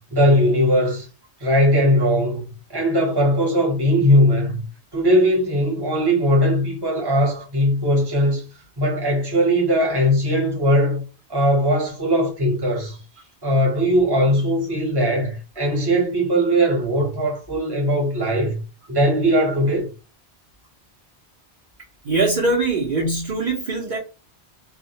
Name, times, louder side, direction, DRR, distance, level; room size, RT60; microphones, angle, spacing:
voice 1, 0.1-1.1 1.4-4.6 4.9-8.4 8.8-11.0 11.3-13.0 13.4-18.6 18.9-19.9, equal, 25° right, 0.8 m, -19 dB
voice 2, 22.0-24.0, right 3 dB, 55° right, 0.6 m, -22 dB
2.2 x 2.1 x 2.7 m
omnidirectional pair, 1.1 m